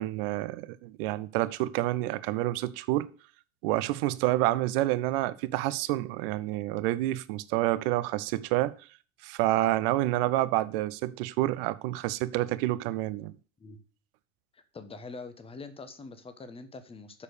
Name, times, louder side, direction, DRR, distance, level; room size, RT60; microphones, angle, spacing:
voice 1, 0.0-3.1 3.6-8.7 9.2-13.3, right 16 dB, 45° right, 0.7 m, -28 dB
voice 2, 14.5-17.2, left 3 dB, 15° left, 1.2 m, -44 dB
7.2 x 6.4 x 6.6 m
figure-of-eight pair, 80°, 38 cm